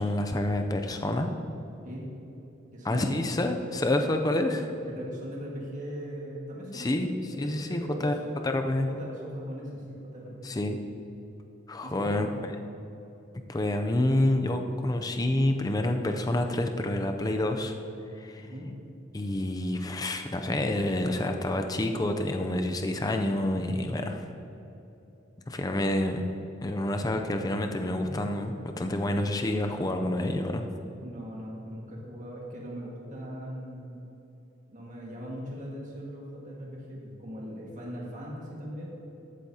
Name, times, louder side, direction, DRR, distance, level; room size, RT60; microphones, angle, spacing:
voice 1, 0.0-1.3 2.8-4.7 6.7-7.1 7.4-8.1 8.4-8.9 10.4-10.8 11.7-12.3 13.5-17.7 18.2-18.5 19.1-24.2 25.5-26.2 26.6-30.7, left 1 dB, 20° left, 5 dB, 0.5 m, -28 dB
voice 2, 2.7-3.1 4.8-8.2 8.9-10.3 11.8-12.3 18.4-18.7 28.0-28.1 30.9-34.0 34.7-39.0, equal, 40° right, -3 dB, 1.7 m, -40 dB
14.0 x 8.3 x 2.8 m, 3.0 s
head